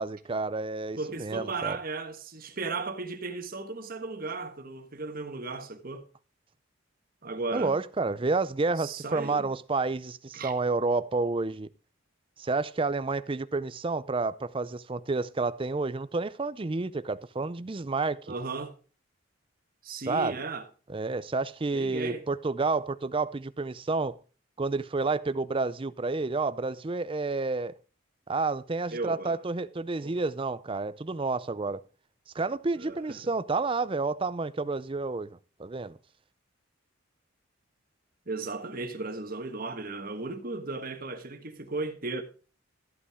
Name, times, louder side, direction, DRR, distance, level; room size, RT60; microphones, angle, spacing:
voice 1, 0.0-1.8 7.5-11.7 12.4-18.3 20.1-20.4 20.9-24.2 24.6-27.8 28.3-31.8 32.3-36.0, right 3 dB, 25° right, 0.5 m, -30 dB
voice 2, 1.0-6.1 7.2-7.8 8.8-9.5 10.3-10.5 18.3-18.7 19.8-20.7 21.7-22.2 28.9-29.4 30.0-30.1 32.7-33.2 38.3-42.2, right 3 dB, 45° right, 1.4 m, -35 dB
13.5 x 8.4 x 3.6 m
head